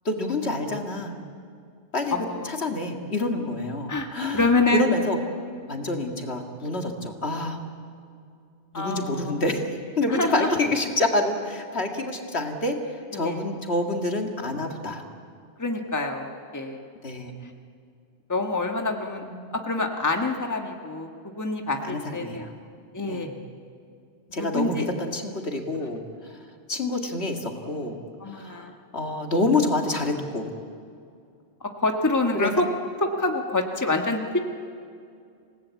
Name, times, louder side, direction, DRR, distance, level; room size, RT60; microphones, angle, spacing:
voice 1, 0.0-1.2 1.9-2.2 2.4-5.2 5.7-7.6 8.7-9.6 10.0-15.0 17.0-17.3 19.2-19.4 21.8-22.5 23.1-23.3 24.3-26.4 26.7-28.0 28.3-30.5 32.3-32.5, left 2 dB, 70° left, 3 dB, 2.3 m, -27 dB
voice 2, 2.1-2.5 3.9-4.9 8.7-9.3 10.1-10.5 13.1-13.4 15.6-16.8 17.4-17.5 18.3-19.2 19.5-22.4 22.9-23.3 24.4-24.8 28.2-28.7 31.6-32.7 33.0-34.4, left 2 dB, 15° left, 3 dB, 1.5 m, -26 dB
27.5 x 18.0 x 8.4 m, 2.4 s
omnidirectional pair, 1.1 m